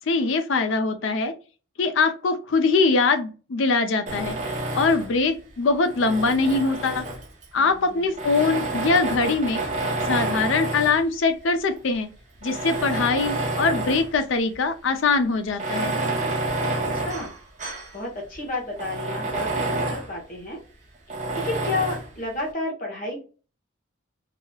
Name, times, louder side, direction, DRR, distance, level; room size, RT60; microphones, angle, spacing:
voice 1, 0.1-1.3 1.8-4.4 4.7-7.0 7.5-9.6 10.1-12.1 12.4-15.9, left 4 dB, 70° left, 8 dB, 0.5 m, -22 dB
Tools, 4.1-5.2 5.8-7.4 8.1-11.1 11.8-11.9 12.4-14.2 14.5-14.6 15.5-17.9 18.3-18.4 18.8-20.1 21.1-22.1, right 2 dB, 35° right, 0.6 m, -28 dB
voice 2, 7.6-8.1 16.8-17.3 17.9-20.6 21.3-23.2, left 2 dB, 40° left, -2 dB, 1.1 m, -31 dB
3.0 x 2.8 x 2.3 m, 0.35 s
head